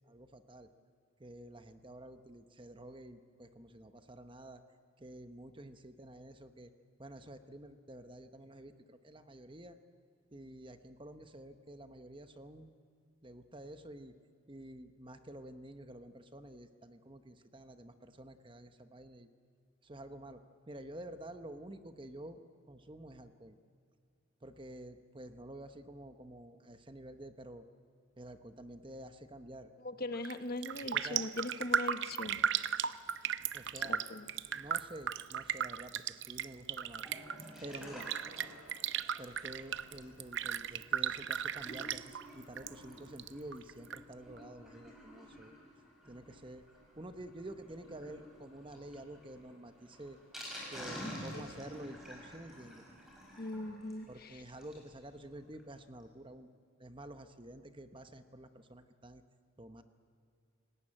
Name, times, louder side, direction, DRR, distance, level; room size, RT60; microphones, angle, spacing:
voice 1, 0.1-0.7 1.2-4.6 5.0-6.7 7.0-9.8 10.3-12.7 13.2-14.1 14.5-19.3 19.8-20.4 20.7-22.4 22.7-23.6 24.4-27.6 28.2-29.7 30.9-31.2 33.5-34.0 34.5-37.0 37.6-38.1 39.2-45.6 46.1-46.6 47.0-50.2 50.7-52.8 54.1-56.5 56.8-59.2 59.6-59.8, right 1 dB, 25° right, 8 dB, 0.9 m, -49 dB
voice 2, 29.8-32.4 33.7-34.3 51.0-51.5 53.4-54.4, left 2 dB, 45° left, 9 dB, 1.1 m, -41 dB
Raindrop, 30.1-30.4 30.6-42.7 43.0-44.0 44.4-44.5, right 8 dB, 55° right, 0.6 m, -36 dB
Sink (filling or washing), 36.9-54.9 55.3-55.4 55.5-55.6 56.0-56.1, equal, ahead, 5.7 m, -51 dB
28.5 x 18.5 x 8.8 m, 2.4 s
head